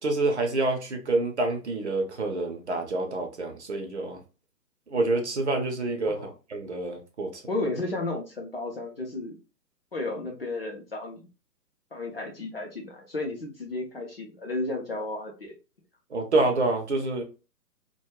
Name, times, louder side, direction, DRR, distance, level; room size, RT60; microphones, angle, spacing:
voice 1, 0.0-4.2 4.9-7.4 16.1-17.2, right 2 dB, 45° right, 0.5 m, -27 dB
voice 2, 7.5-9.4 9.9-11.2 11.9-15.5, left 2 dB, 40° left, 0.5 m, -33 dB
2.3 x 2.0 x 2.9 m
figure-of-eight pair, 140°, 50 cm